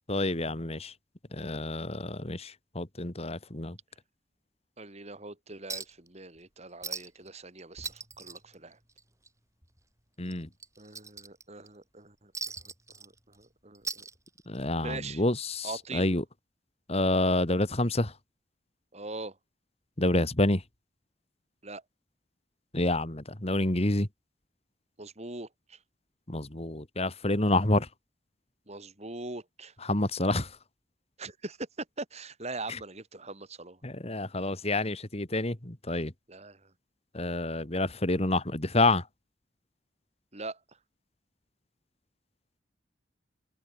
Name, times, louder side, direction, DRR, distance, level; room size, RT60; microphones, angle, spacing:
voice 1, 0.1-0.9 1.3-3.8 10.2-10.5 14.5-16.2 16.9-18.1 20.0-20.6 22.7-24.1 26.3-27.9 29.8-30.6 32.7-32.8 33.8-36.1 37.1-39.1, left 2 dB, 35° left, 2.3 m, -28 dB
voice 2, 4.8-8.8 10.8-12.3 13.0-14.0 14.8-15.2 15.6-16.1 18.9-19.3 21.6-21.8 25.0-25.8 28.7-29.7 31.2-31.7 32.0-33.8 36.3-36.7 40.3-40.6, right 3 dB, 40° right, 4.3 m, -42 dB
Chink clink, 5.7-6.1 6.4-6.5 6.8-7.3 7.6-9.3 9.6-9.8 10.3-11.7 12.3-13.4 13.7-14.7 15.8-15.9, right 4 dB, 15° right, 7.2 m, -40 dB
head